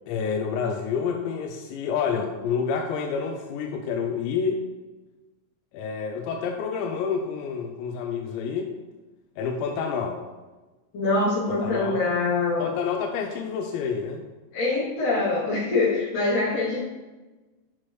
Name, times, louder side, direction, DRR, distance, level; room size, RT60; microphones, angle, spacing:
voice 1, 0.1-4.6 5.7-8.7 9.4-10.2 11.5-12.0 12.6-14.2, left 6 dB, 85° left, 2 dB, 2.6 m, -28 dB
voice 2, 10.9-12.8 14.5-16.8, left 3 dB, 50° left, -8 dB, 3.9 m, -24 dB
8.7 x 6.0 x 3.2 m, 1.2 s
omnidirectional pair, 5.7 m